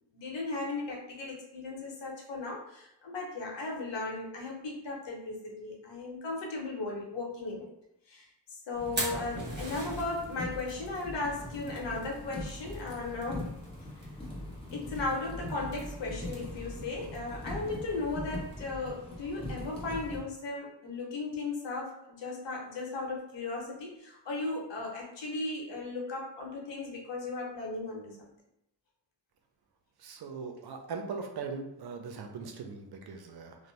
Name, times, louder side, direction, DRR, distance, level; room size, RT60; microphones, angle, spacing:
voice 1, 0.1-7.7 8.1-8.3 8.7-13.5 14.7-28.3, left 3 dB, 90° left, -1 dB, 0.8 m, -36 dB
sound 1, 8.7-20.2, left 1 dB, 15° left, 0.8 m, -41 dB
Fire, 8.7-20.2, right 1 dB, 25° right, 1.1 m, -45 dB
voice 2, 30.0-33.6, right 5 dB, 60° right, 4 dB, 0.5 m, -40 dB
2.5 x 2.1 x 3.1 m, 0.82 s
cardioid pair, 95°, 42 cm